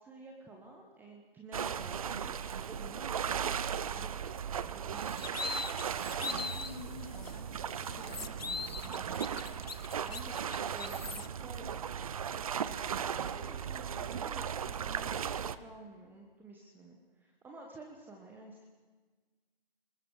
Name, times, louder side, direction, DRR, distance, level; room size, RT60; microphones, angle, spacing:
voice 1, 0.0-5.5 10.0-11.7 12.5-18.7, right 2 dB, 5° right, 0 dB, 1.3 m, -51 dB
sound 1, 1.5-15.6, right 8 dB, 35° right, 0.7 m, -37 dB
sound 2, 5.0-6.8 7.2-7.3 7.7-11.3, left 5 dB, 80° left, 1.0 m, -41 dB
voice 2, 6.3-9.2, left 5 dB, 35° left, 1 dB, 3.9 m, -49 dB
26.5 x 21.0 x 4.8 m, 1.4 s
figure-of-eight pair, 140°, 30 cm